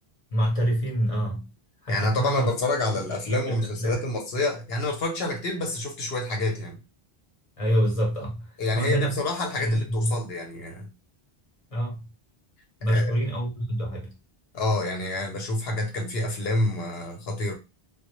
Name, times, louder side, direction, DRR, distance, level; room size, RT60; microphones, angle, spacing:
voice 1, 0.3-1.5 1.8-2.5 2.9-3.0 3.3-3.9 7.6-8.5 8.8-9.1 9.6-10.2 11.7-12.1 12.8-14.1, equal, 35° left, 0.8 m, -26 dB
voice 2, 1.9-6.8 8.6-10.9 12.8-13.1 14.5-17.5, left 2 dB, 75° left, 0.9 m, -28 dB
2.1 x 2.1 x 2.9 m
omnidirectional pair, 1.1 m